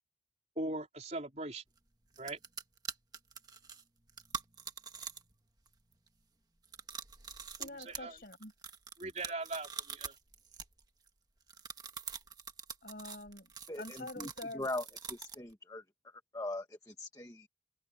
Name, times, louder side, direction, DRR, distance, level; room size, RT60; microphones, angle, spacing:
voice 1, 0.6-1.6 2.2-2.4 7.6-8.2 9.0-10.1, right 2 dB, 40° right, 4.0 m, -40 dB
sound 1, 1.8-1.9 2.1-5.4 5.7-6.1 6.6-11.1 11.5-15.5, right 6 dB, 20° right, 1.6 m, -45 dB
voice 2, 7.6-8.5 12.8-13.5 13.8-14.7, left 2 dB, 55° left, 6.9 m, -46 dB
voice 3, 13.7-14.8 15.1-15.8 16.3-17.5, left 2 dB, 20° left, 1.4 m, -40 dB
head